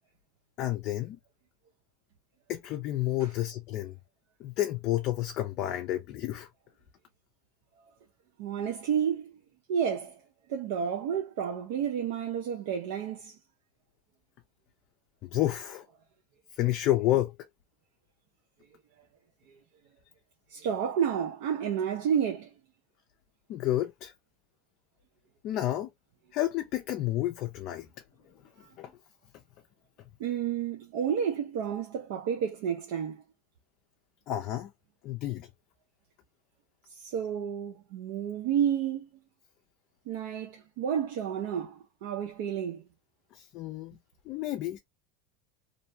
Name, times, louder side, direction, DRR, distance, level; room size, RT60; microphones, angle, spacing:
voice 1, 0.6-1.2 2.5-4.0 4.4-6.5 15.2-15.9 16.5-17.3 23.5-24.1 25.4-25.9 26.3-27.9 28.8-28.9 34.3-34.7 35.0-35.5 43.3-44.0 44.3-44.8, left 14 dB, 50° left, 0.4 m, -30 dB
voice 2, 8.4-9.3 9.7-10.2 10.5-13.3 20.5-22.5 28.6-28.7 30.2-33.2 36.9-39.1 40.1-42.8, right 8 dB, 70° right, 0.6 m, -30 dB
2.5 x 2.0 x 2.6 m
supercardioid pair, 130°, 0 cm